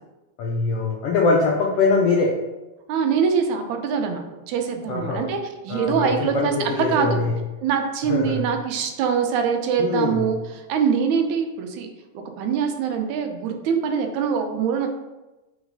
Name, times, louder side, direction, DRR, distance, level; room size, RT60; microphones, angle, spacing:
voice 1, 0.4-2.4 4.9-5.3 5.7-7.3 8.1-8.5 9.8-10.3, left 3 dB, 80° left, 0 dB, 1.3 m, -22 dB
voice 2, 2.9-7.2 7.6-10.4 10.7-11.9 12.1-14.9, right 6 dB, 80° right, 4 dB, 2.1 m, -23 dB
4.8 x 4.0 x 5.2 m, 1.1 s
omnidirectional pair, 3.4 m